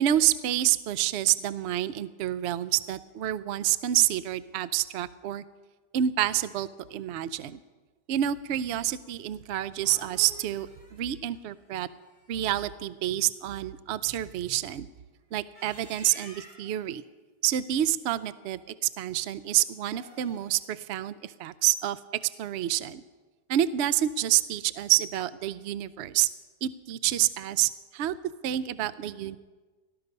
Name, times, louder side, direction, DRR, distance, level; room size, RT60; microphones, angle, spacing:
voice 1, 0.0-5.4 5.9-7.6 8.1-11.9 12.3-14.9 15.3-17.0 17.4-22.0 22.4-23.0 23.5-26.3 26.6-28.2 28.4-29.4, right 12 dB, 85° right, 16 dB, 0.6 m, -28 dB
sound 1, 9.8-12.6 15.3-16.8 19.8-20.7, equal, 20° right, 2.5 m, -51 dB
18.0 x 13.0 x 5.3 m, 1.3 s
omnidirectional pair, 1.8 m